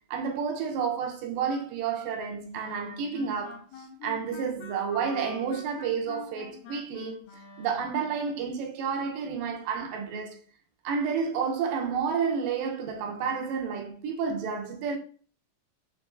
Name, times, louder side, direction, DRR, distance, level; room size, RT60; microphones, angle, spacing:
voice 1, 0.1-7.2 7.6-10.4 10.8-15.0, right 6 dB, 85° right, 2.2 m, -30 dB
sound 1, 2.5-8.2, left 7 dB, 90° left, 2.3 m, -45 dB
6.4 x 2.3 x 2.2 m
omnidirectional pair, 3.9 m